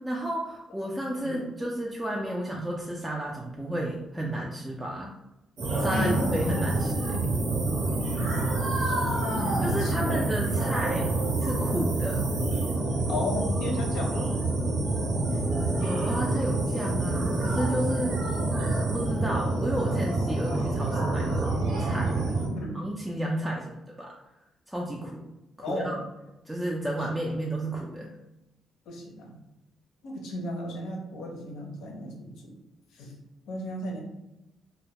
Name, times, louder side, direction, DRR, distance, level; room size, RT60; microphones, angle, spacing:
voice 1, 0.0-5.1 5.8-7.2 9.6-11.1 11.4-12.2 15.3-15.4 15.7-18.3 18.9-22.1 22.7-24.1 24.7-25.3 25.6-26.0 26.5-28.1, right 1 dB, 10° right, -2 dB, 0.3 m, -32 dB
sound 1, 5.6-22.5, right 2 dB, 70° right, 0.8 m, -27 dB
voice 2, 5.9-6.3 8.8-10.3 13.1-14.3 21.2-21.3 22.5-22.8 25.6-26.0 28.9-29.4 30.0-32.5 32.9-33.1 33.5-34.0, left 1 dB, 80° left, 1 dB, 0.5 m, -34 dB
2.1 x 2.1 x 2.8 m, 0.94 s
cardioid pair, 90°, 0 cm